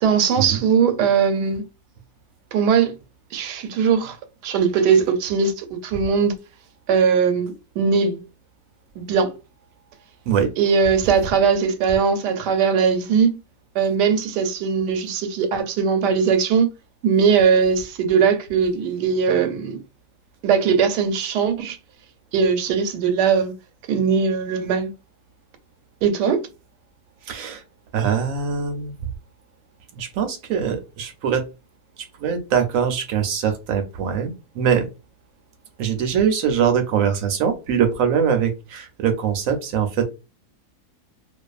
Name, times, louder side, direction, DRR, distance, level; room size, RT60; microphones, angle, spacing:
voice 1, 0.0-1.6 2.5-2.9 3.3-4.2 4.4-6.3 6.9-8.2 9.0-9.3 10.6-13.4 13.8-16.7 17.0-19.8 20.4-21.8 22.3-23.5 23.9-24.9 26.0-26.4, right 6 dB, 85° right, 1.2 m, -20 dB
voice 2, 27.2-27.6 27.9-28.9 29.9-31.5 32.0-34.9 35.8-40.1, right 7 dB, 70° right, 0.9 m, -22 dB
2.5 x 2.3 x 2.3 m
omnidirectional pair, 1.7 m